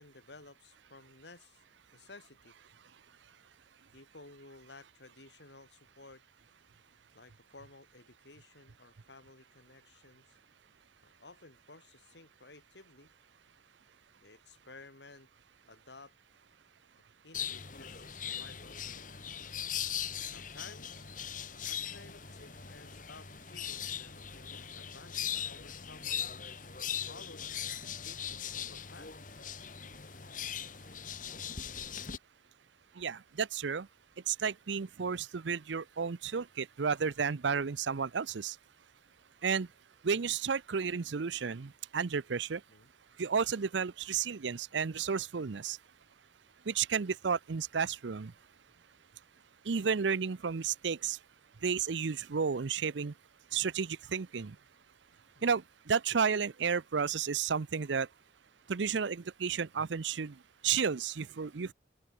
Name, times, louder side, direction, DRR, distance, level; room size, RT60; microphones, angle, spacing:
voice 1, 0.0-1.6 1.9-2.5 3.9-6.2 7.1-10.4 11.0-13.1 14.2-15.3 15.7-16.1 17.2-19.1 20.1-21.1 21.6-26.3 26.9-27.5 27.8-29.1 42.7-42.9 55.3-55.6, left 3 dB, 70° left, 2.9 m, -55 dB
sound 1, 17.3-32.2, left 9 dB, 45° left, 1.9 m, -40 dB
voice 2, 32.9-33.9 34.3-38.6 39.4-39.7 40.0-42.6 43.2-45.8 46.6-48.3 49.6-51.2 51.6-53.1 53.5-54.6 55.4-58.1 58.7-61.7, right 6 dB, 80° right, 0.6 m, -32 dB
open air
head